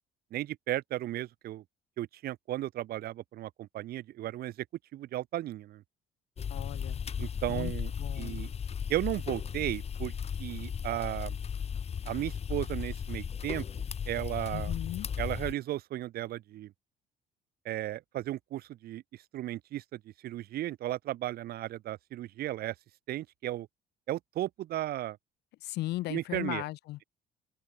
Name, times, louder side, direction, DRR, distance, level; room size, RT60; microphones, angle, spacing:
voice 1, 0.3-1.6 2.0-4.5 4.9-5.8 7.2-7.9 8.2-8.5 8.9-10.1 10.4-11.4 12.0-13.6 14.1-14.7 15.2-16.7 17.6-19.0 19.3-22.7 23.1-23.7 24.1-25.2 26.1-26.6, right 14 dB, 65° right, 1.1 m, -35 dB
sound 1, 6.4-15.5, left 7 dB, 40° left, 1.7 m, -36 dB
voice 2, 6.5-7.0 7.5-7.7 8.0-8.4 14.5-15.1 25.6-27.0, left 17 dB, 80° left, 1.8 m, -37 dB
cardioid pair, 110°, 17 cm